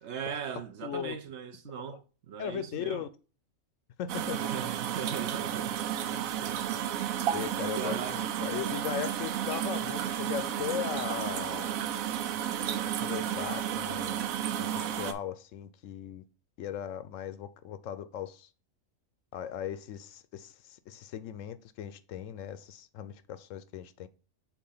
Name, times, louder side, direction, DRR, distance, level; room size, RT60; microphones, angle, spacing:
voice 1, 0.0-3.0 4.4-6.8 7.7-8.2, right 7 dB, 60° right, 0.9 m, -40 dB
voice 2, 0.8-1.2 1.6-2.0 2.4-3.1 4.0-4.5 7.3-11.8 12.8-16.2 16.6-18.5 19.3-24.1, left 9 dB, 75° left, 0.9 m, -38 dB
sound 1, 4.1-15.1, right 10 dB, 90° right, 1.0 m, -32 dB
7.1 x 2.5 x 5.4 m
omnidirectional pair, 1.4 m